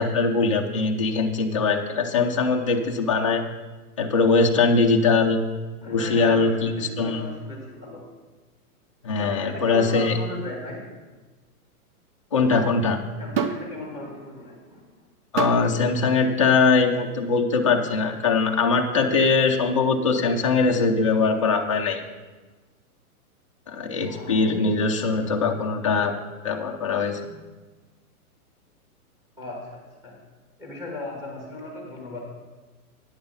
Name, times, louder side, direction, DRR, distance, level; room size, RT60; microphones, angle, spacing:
voice 1, 0.0-3.4 4.0-5.4 5.9-7.2 9.0-10.2 12.3-13.0 15.3-22.0 23.7-26.1 26.4-27.3, left 4 dB, 25° left, 1 dB, 0.3 m, -21 dB
voice 2, 5.8-8.1 9.2-10.9 13.2-14.8 24.0-24.6 29.4-30.2 30.6-32.2, left 2 dB, 10° right, -1 dB, 2.3 m, -37 dB
repinique-hand, 13.4-13.7 15.4-15.7 16.7-16.9, right 7 dB, 40° right, 0.6 m, -26 dB
9.6 x 7.0 x 5.3 m, 1.2 s
hypercardioid pair, 155°, 45 cm